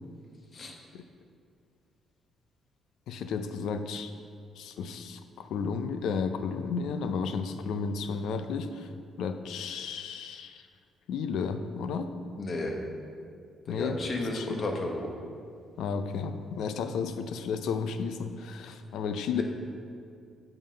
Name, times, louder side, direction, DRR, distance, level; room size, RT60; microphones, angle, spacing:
voice 1, 3.1-4.1 4.6-8.9 9.2-10.6 11.1-12.1 13.7-14.0 14.3-14.6 15.8-19.4, left 5 dB, 80° left, 9 dB, 0.4 m, -33 dB
voice 2, 12.4-12.7 13.7-15.1 19.3-19.4, left 2 dB, 50° left, 1 dB, 0.9 m, -32 dB
7.0 x 3.8 x 5.3 m, 2.3 s
cardioid pair, 90°, 0 cm